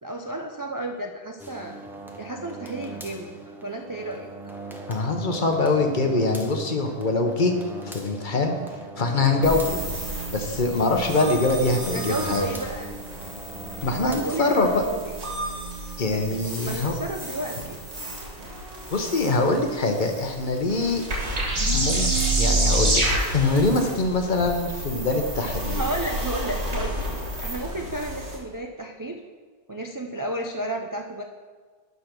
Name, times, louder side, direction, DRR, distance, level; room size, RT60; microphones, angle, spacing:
voice 1, 0.0-1.8 2.2-4.3 11.9-12.9 14.1-15.2 16.6-17.8 25.8-27.0 27.4-29.2 29.7-31.2, right 1 dB, 30° right, 2 dB, 0.3 m, -32 dB
sound 1, 1.4-14.9, right 2 dB, ahead, 0.7 m, -40 dB
voice 2, 4.9-7.5 7.9-8.5 9.0-9.8 10.3-12.4 13.8-14.8 16.0-16.9 18.9-21.0 21.7-22.1 22.4-23.0 23.3-25.9, left 3 dB, 45° left, 4 dB, 1.0 m, -23 dB
sound 2, 9.4-28.4, right 1 dB, 70° right, 2.3 m, -29 dB
11.5 x 4.0 x 6.0 m, 1.5 s
omnidirectional pair, 1.2 m